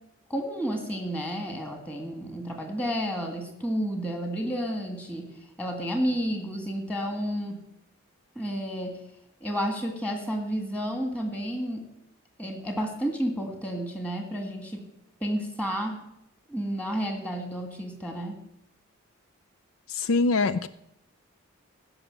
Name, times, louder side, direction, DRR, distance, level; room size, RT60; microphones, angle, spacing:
voice 1, 0.3-5.3 5.6-7.6 8.4-9.0 9.4-11.9 12.4-14.8 15.2-16.0 16.5-18.4, equal, 5° left, 3 dB, 1.9 m, -31 dB
voice 2, 19.9-20.7, left 3 dB, 70° left, 13 dB, 0.5 m, -24 dB
15.5 x 6.0 x 7.5 m, 0.79 s
head